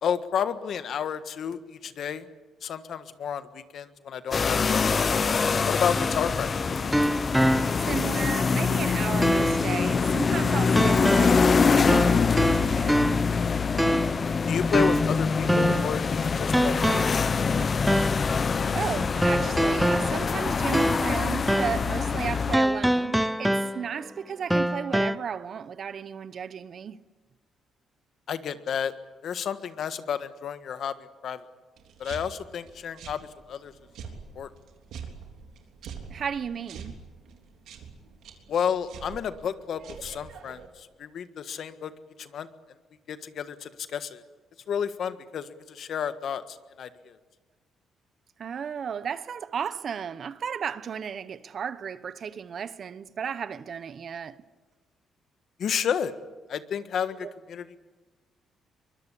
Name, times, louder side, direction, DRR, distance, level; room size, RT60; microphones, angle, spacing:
voice 1, 0.0-2.3 2.6-5.2 5.7-6.5 14.5-17.2 28.3-28.9 29.2-30.9 31.2-31.4 32.0-33.7 34.3-34.5 38.5-41.9 42.2-42.5 43.1-44.2 44.7-47.2 55.6-56.1 56.5-57.8, left 8 dB, 65° left, 1.5 m, -31 dB
sound 1, 4.3-22.6, left 5 dB, 40° left, 0.8 m, -24 dB
sound 2, 6.0-8.0 8.4-8.5 9.2-9.7 10.8-11.5 11.9-13.4 13.8-14.3 14.7-16.0 16.5-17.3 17.9-18.3 19.2-21.2 21.5-21.9 22.5-24.0 24.5-25.2, equal, 5° right, 0.8 m, -25 dB
voice 2, 7.8-13.0 17.6-17.7 18.7-27.0 36.1-36.9 48.4-54.4 57.2-57.3, right 7 dB, 55° right, 1.0 m, -34 dB
sound 3, 31.8-40.7, right 6 dB, 80° right, 3.4 m, -45 dB
23.5 x 22.0 x 8.5 m
cardioid pair, 90°, 0 cm